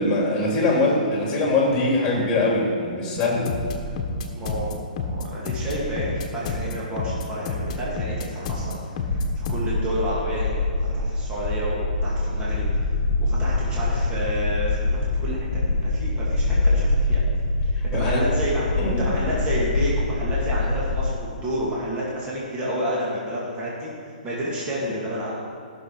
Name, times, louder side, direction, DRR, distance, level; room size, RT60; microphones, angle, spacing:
voice 1, 0.0-3.5 17.9-18.2 18.8-19.0, left 2 dB, 20° left, -2 dB, 3.1 m, -22 dB
sound 1, 3.2-9.6, left 3 dB, 45° left, 1.4 m, -29 dB
voice 2, 4.4-8.8 9.1-12.9 13.2-15.5 15.8-17.2 17.6-18.7 19.0-23.9 24.2-25.4, equal, 20° right, -6 dB, 2.4 m, -30 dB
sound 2, 9.1-21.1, left 2 dB, 70° left, 1.2 m, -24 dB
15.0 x 6.5 x 4.7 m, 2.3 s
hypercardioid pair, 140°, 5 cm